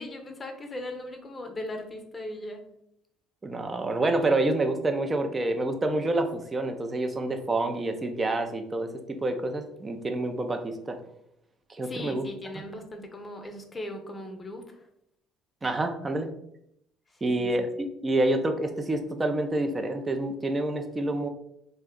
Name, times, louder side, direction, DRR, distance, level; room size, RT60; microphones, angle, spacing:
voice 1, 0.0-2.6 11.8-14.9 17.1-17.7, left 1 dB, 25° left, 4 dB, 0.6 m, -38 dB
voice 2, 3.4-11.0 11.8-12.3 15.6-16.3 17.2-17.7 18.0-21.3, right 2 dB, 25° right, 6 dB, 0.5 m, -27 dB
2.6 x 2.1 x 3.6 m, 0.76 s
hypercardioid pair, 65°, 0 cm